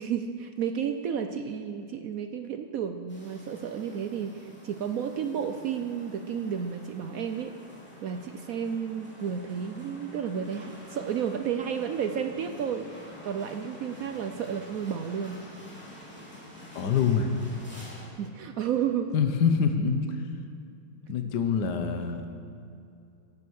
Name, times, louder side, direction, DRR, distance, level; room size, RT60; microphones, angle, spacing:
voice 1, 0.0-7.5 8.0-15.4 18.2-19.1, right 7 dB, 80° right, 7 dB, 0.7 m, -32 dB
sound 1, 3.1-18.1, left 1 dB, 5° left, 3.5 m, -48 dB
voice 2, 16.7-17.3 19.1-20.2 21.1-22.3, left 6 dB, 60° left, 7 dB, 1.5 m, -25 dB
16.0 x 11.0 x 6.4 m, 2.5 s
omnidirectional pair, 2.2 m